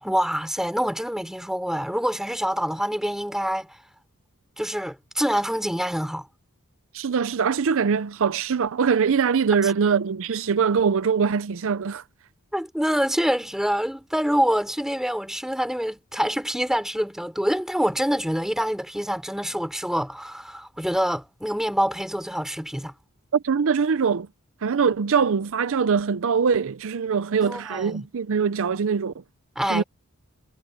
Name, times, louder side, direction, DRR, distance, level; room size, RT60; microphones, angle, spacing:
voice 1, 0.0-3.7 4.6-6.3 12.5-22.9 27.4-28.1 29.6-29.8, equal, ahead, 3.5 m, -26 dB
voice 2, 6.9-12.0 23.3-24.3 24.6-29.1 29.7-29.8, right 6 dB, 65° right, 0.5 m, -22 dB
head